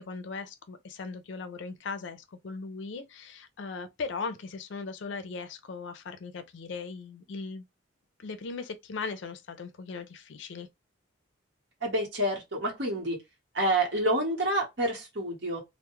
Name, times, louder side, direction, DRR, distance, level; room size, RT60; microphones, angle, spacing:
voice 1, 0.0-7.6 8.2-10.7, left 4 dB, 65° left, 0.4 m, -38 dB
voice 2, 11.8-13.2 13.5-15.6, right 1 dB, 60° right, 1.0 m, -28 dB
2.2 x 2.0 x 2.9 m
head